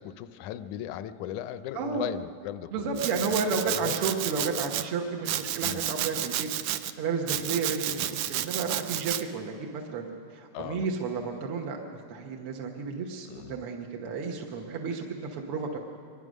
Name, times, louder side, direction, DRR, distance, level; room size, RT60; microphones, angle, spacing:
voice 1, 0.0-3.3 3.7-4.0 5.6-5.9 10.5-10.9 13.3-13.6, left 11 dB, 80° left, 13 dB, 2.0 m, -38 dB
voice 2, 1.8-2.1 2.7-11.8 12.1-15.8, right 4 dB, 55° right, 1 dB, 1.7 m, -32 dB
Domestic sounds home sounds, 3.0-4.8 5.2-6.9 7.3-9.2, right 12 dB, 85° right, 1.4 m, -31 dB
23.5 x 20.5 x 6.4 m, 2.3 s
omnidirectional pair, 3.6 m